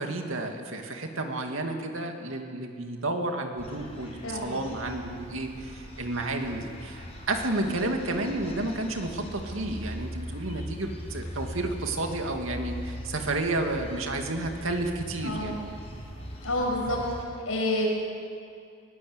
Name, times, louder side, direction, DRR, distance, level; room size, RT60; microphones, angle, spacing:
voice 1, 0.0-15.6, right 2 dB, 80° right, 4 dB, 2.3 m, -31 dB
sound 1, 3.6-17.2, equal, 30° left, 4.5 m, -40 dB
voice 2, 4.2-4.5 15.2-15.6 16.4-17.0 17.4-17.9, left 1 dB, 85° left, -1 dB, 6.7 m, -28 dB
20.5 x 20.0 x 8.0 m, 2.4 s
head